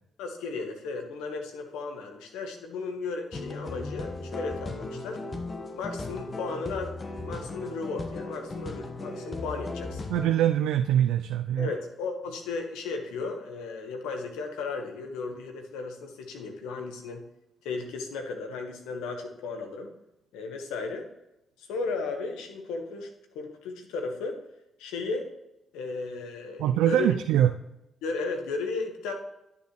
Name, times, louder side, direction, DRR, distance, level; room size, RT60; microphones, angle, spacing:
voice 1, 0.2-5.2 5.7-6.9 7.2-10.1 11.6-17.2 17.6-19.9 20.3-21.1 21.6-23.1 23.3-24.4 24.8-25.3 25.7-27.1 28.0-29.1, left 4 dB, 85° left, 4 dB, 1.4 m, -35 dB
sound 1, 3.3-10.3, left 2 dB, 40° left, 1.3 m, -37 dB
voice 2, 10.1-11.7 26.6-27.5, right 11 dB, 85° right, 7 dB, 0.4 m, -23 dB
11.0 x 7.0 x 3.2 m, 0.90 s
supercardioid pair, 50°, 0 cm